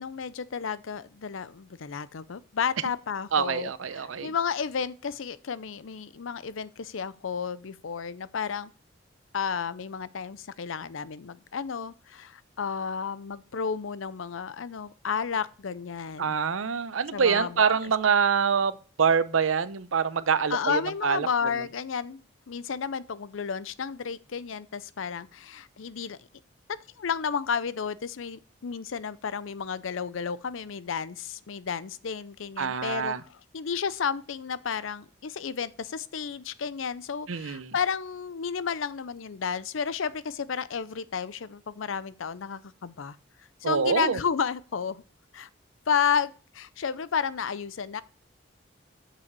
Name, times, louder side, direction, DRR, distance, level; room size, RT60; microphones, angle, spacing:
voice 1, 0.0-8.7 9.3-16.4 17.1-17.8 20.5-22.2 22.5-26.3 27.0-43.2 43.6-45.0 45.3-45.5 45.9-48.0, left 6 dB, 80° left, 0.5 m, -32 dB
voice 2, 3.3-4.3 16.2-18.7 19.0-21.3 32.6-33.2 37.3-37.7 43.6-44.2, right 6 dB, 90° right, 0.6 m, -25 dB
7.0 x 5.5 x 6.7 m
head